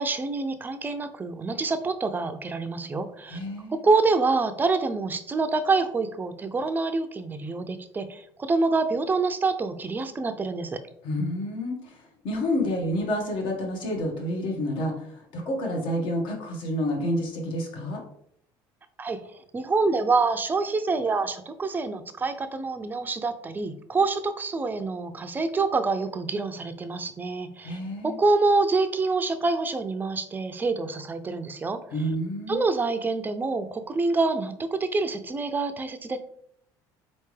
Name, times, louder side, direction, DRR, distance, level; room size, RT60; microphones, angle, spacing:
voice 1, 0.0-3.4 3.7-10.8 19.0-19.2 19.5-31.8 32.5-36.2, right 3 dB, 20° right, 9 dB, 0.4 m, -26 dB
voice 2, 3.3-3.8 11.0-11.9 12.2-18.0 27.6-28.2 31.9-32.6, left 1 dB, 65° left, 1 dB, 1.4 m, -29 dB
4.1 x 3.3 x 3.2 m, 0.69 s
cardioid pair, 115°, 9 cm